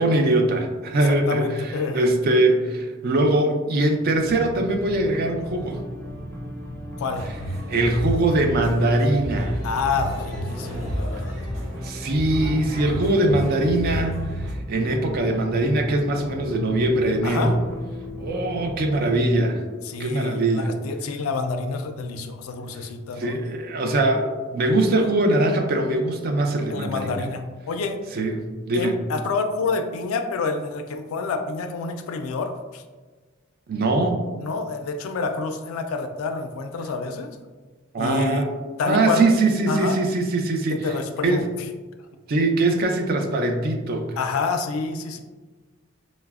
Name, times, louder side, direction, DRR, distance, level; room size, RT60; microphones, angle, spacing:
voice 1, 0.0-1.5 1.9-5.8 7.7-9.6 11.8-14.1 14.4-17.6 18.2-19.6 20.0-20.7 23.2-27.2 28.2-28.4 28.7-29.0 33.7-34.2 37.9-38.5 38.8-40.8 41.2-41.4 42.3-44.2, right 2 dB, 50° right, 4 dB, 0.4 m, -22 dB
voice 2, 0.9-2.1 7.0-7.3 9.6-11.4 17.2-17.6 19.8-23.3 26.7-28.0 28.7-32.8 34.4-37.3 38.0-38.5 38.8-39.3 39.7-40.0 40.7-41.5 44.2-45.2, left 4 dB, 85° left, 6 dB, 0.3 m, -28 dB
sound 1, 4.0-20.5, left 1 dB, 10° left, 0.5 m, -37 dB
sound 2, 7.1-14.5, equal, 65° right, 0.9 m, -31 dB
4.0 x 2.0 x 2.3 m, 1.3 s
head